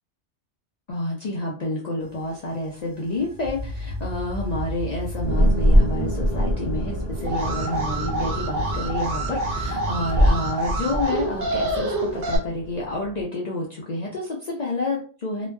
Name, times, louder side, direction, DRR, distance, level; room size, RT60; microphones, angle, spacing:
voice 1, 0.9-15.5, left 2 dB, 55° left, -4 dB, 0.5 m, -29 dB
sound 1, 2.0-10.5, equal, 85° right, 1.0 m, -33 dB
sound 2, 5.2-13.2, equal, 25° left, 0.8 m, -25 dB
Alarm, 7.2-12.4, right 2 dB, 55° right, 0.7 m, -28 dB
2.5 x 2.2 x 2.2 m, 0.40 s
omnidirectional pair, 1.2 m